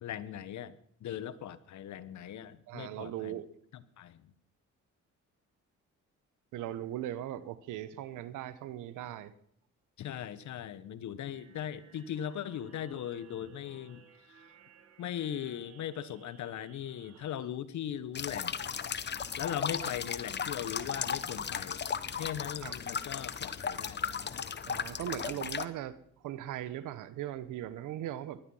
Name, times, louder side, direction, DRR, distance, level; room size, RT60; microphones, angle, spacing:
voice 1, 0.0-3.4 3.7-4.3 10.0-14.0 14.3-14.4 15.0-18.6 19.4-21.8 22.1-24.1, left 10 dB, 70° left, 15 dB, 1.2 m, -39 dB
voice 2, 2.7-3.5 6.5-9.3 22.6-22.7 24.7-26.0 26.2-28.4, right 12 dB, 90° right, 15 dB, 1.1 m, -39 dB
sound 1, 11.3-17.5, right 6 dB, 50° right, 3.3 m, -59 dB
sound 2, 18.1-25.7, left 7 dB, 35° left, 1.0 m, -36 dB
19.0 x 12.5 x 5.6 m, 0.66 s
cardioid pair, 90°, 30 cm